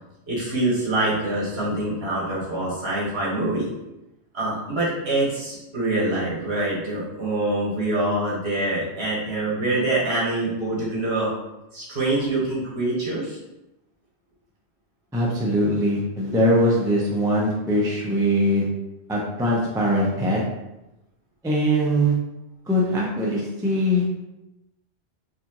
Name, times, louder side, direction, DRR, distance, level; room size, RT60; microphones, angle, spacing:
voice 1, 0.3-3.7 4.3-11.3 11.7-13.4 16.3-16.4, right 2 dB, 60° right, -7 dB, 1.7 m, -25 dB
voice 2, 15.1-18.7 19.1-20.4 21.4-22.1 22.7-24.1, equal, 5° right, -4 dB, 0.5 m, -21 dB
4.3 x 2.6 x 2.9 m, 0.95 s
omnidirectional pair, 1.2 m